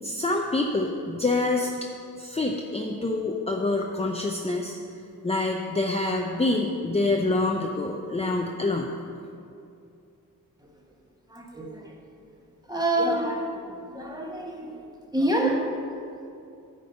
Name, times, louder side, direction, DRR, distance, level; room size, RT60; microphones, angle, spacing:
voice 1, 0.0-1.7 2.2-4.8 5.2-8.9, left 2 dB, 20° left, 1 dB, 0.6 m, -26 dB
voice 2, 11.3-11.9 12.7-14.8 15.1-15.7, right 1 dB, 10° right, -1 dB, 1.4 m, -27 dB
9.4 x 5.3 x 7.8 m, 2.6 s
wide cardioid pair, 105°, 35 cm